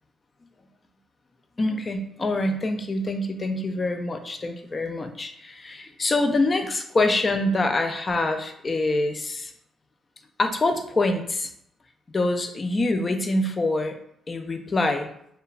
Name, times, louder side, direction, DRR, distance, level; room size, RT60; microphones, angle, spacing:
voice 1, 1.6-9.5 10.4-11.5 12.1-14.0 14.3-15.1, left 2 dB, 30° left, 6 dB, 0.3 m, -25 dB
2.8 x 2.2 x 2.4 m, 0.72 s
cardioid pair, 90°, 0 cm